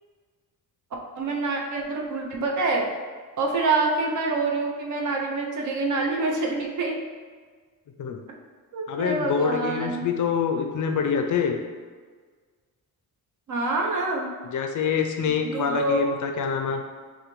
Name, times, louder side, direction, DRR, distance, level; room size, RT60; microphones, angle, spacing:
voice 1, 1.2-2.9 3.4-7.0 8.7-10.1 13.5-14.3 15.4-16.1, right 3 dB, 55° right, 0 dB, 0.7 m, -26 dB
voice 2, 8.9-11.6 14.4-16.9, left 6 dB, 55° left, 4 dB, 0.5 m, -26 dB
6.3 x 2.2 x 3.1 m, 1.5 s
wide cardioid pair, 155°, 38 cm